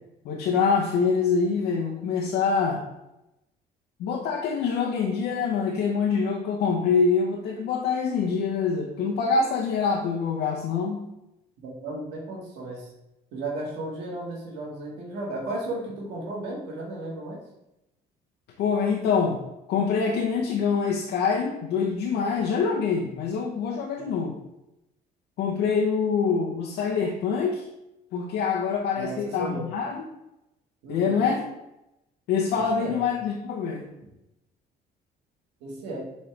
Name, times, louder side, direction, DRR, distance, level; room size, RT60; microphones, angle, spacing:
voice 1, 0.2-2.8 4.0-11.0 18.6-19.4 19.7-24.4 25.4-27.6 28.1-30.0 30.9-31.4 32.3-33.9, left 5 dB, 80° left, -1 dB, 0.9 m, -25 dB
voice 2, 11.6-12.9 13.3-17.4 24.0-24.1 29.0-29.7 30.8-31.2 32.5-33.1 35.6-36.1, right 2 dB, 90° right, -3 dB, 1.8 m, -34 dB
7.2 x 4.3 x 3.3 m, 0.89 s
cardioid pair, 110°, 17 cm